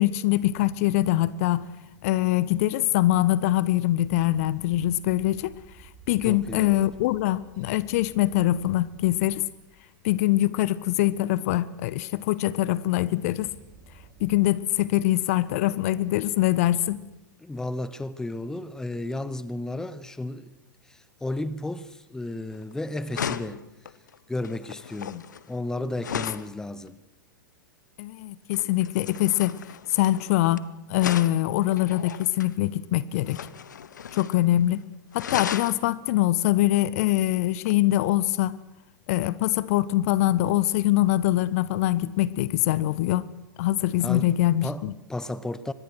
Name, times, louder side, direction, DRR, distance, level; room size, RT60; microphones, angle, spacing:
voice 1, 0.0-1.7 2.0-9.4 10.0-13.5 14.2-17.0 25.0-25.2 28.0-29.6 29.9-33.4 34.1-34.8 35.1-38.6 39.1-43.3 43.6-44.9, left 15 dB, 45° left, 0.8 m, -23 dB
sound 1, 4.0-11.8 13.3-14.4, right 5 dB, 35° right, 3.1 m, -52 dB
voice 2, 6.2-6.9 17.4-20.5 20.9-23.7 24.3-27.0 44.0-44.3 44.6-45.7, left 2 dB, 5° left, 1.0 m, -33 dB
sound 2, 22.5-22.7 23.1-26.5 28.5-30.6 31.0-32.5 33.2-34.4 34.7-34.8 35.1-35.8 37.7-37.8, left 8 dB, 65° left, 1.0 m, -35 dB
24.0 x 20.5 x 6.3 m
figure-of-eight pair, 95°, 10 cm